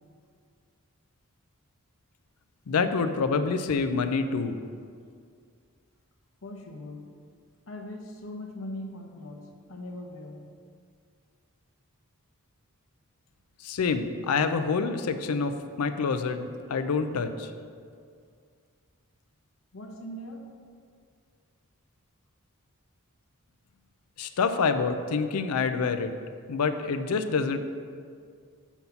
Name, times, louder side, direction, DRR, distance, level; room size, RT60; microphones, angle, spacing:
voice 1, 2.7-4.6 13.6-17.5 24.2-26.1 26.5-27.6, left 5 dB, 85° left, 9 dB, 0.5 m, -27 dB
voice 2, 6.4-7.1 7.7-10.5 19.7-20.5, left 1 dB, 60° left, 2 dB, 0.8 m, -40 dB
7.1 x 4.0 x 5.7 m, 2.2 s
head